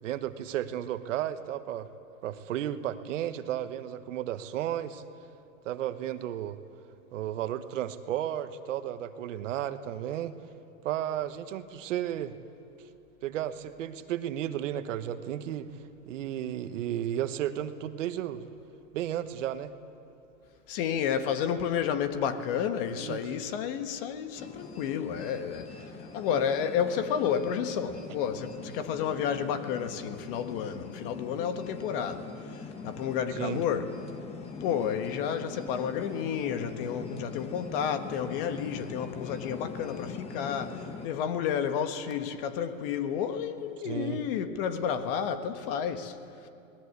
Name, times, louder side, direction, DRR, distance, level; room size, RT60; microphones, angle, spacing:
voice 1, 0.0-1.9 2.2-5.0 5.6-6.6 7.1-10.3 10.8-12.4 13.2-15.7 16.1-18.5 18.9-19.7 22.9-23.2 33.4-33.6 43.8-44.2, right 11 dB, 65° right, 1.3 m, -33 dB
voice 2, 20.7-25.8 26.1-33.9 34.6-46.2, left 8 dB, 40° left, 1.5 m, -31 dB
sound 1, 24.4-41.1, left 5 dB, 15° left, 1.2 m, -42 dB
29.0 x 20.0 x 8.3 m
supercardioid pair, 155°, 41 cm